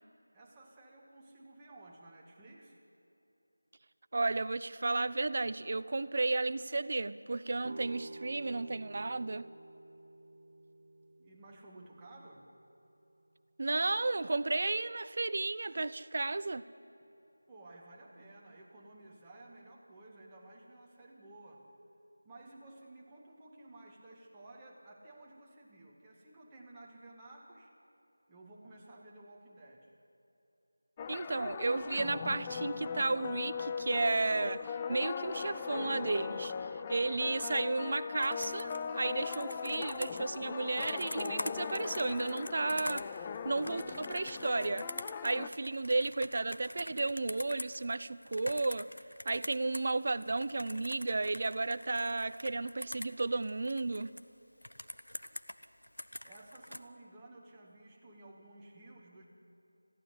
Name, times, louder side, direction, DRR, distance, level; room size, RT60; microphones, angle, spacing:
voice 1, 0.3-2.8 11.2-12.5 17.5-21.7 22.2-27.7 28.3-29.9 56.2-59.2, right 2 dB, 10° right, -3 dB, 2.0 m, -54 dB
voice 2, 4.1-9.5 13.6-16.6 31.1-43.1 43.4-44.9 45.2-48.9 49.2-54.1, right 3 dB, 45° right, 16 dB, 0.6 m, -33 dB
sound 1, 7.6-13.4, right 1 dB, 65° right, 1.1 m, -51 dB
sound 2, 31.0-45.5, left 6 dB, 15° left, 0.5 m, -39 dB
Computer keyboard, 38.2-49.9 50.2-54.2 54.6-56.8, left 1 dB, 85° left, 1.0 m, -45 dB
21.0 x 15.0 x 9.8 m, 3.0 s
figure-of-eight pair, 170°, 0 cm